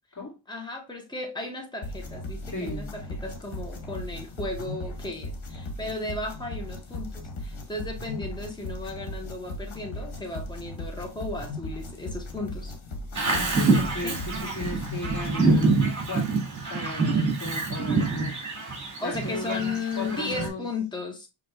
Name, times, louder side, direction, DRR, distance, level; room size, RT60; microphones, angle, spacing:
voice 1, 0.5-12.7 14.0-14.2 19.0-21.3, left 3 dB, 10° left, 1.2 m, -35 dB
sound 1, 1.8-15.5, left 1 dB, 90° left, 1.3 m, -37 dB
voice 2, 2.5-2.9 13.2-15.8 16.0-16.4 16.7-18.4 19.0-20.7, left 2 dB, 40° left, 2.3 m, -36 dB
Bird vocalization bird call bird song, 13.2-20.5, right 3 dB, 40° right, 2.1 m, -26 dB
5.5 x 3.8 x 2.3 m
wide cardioid pair, 95°, 46 cm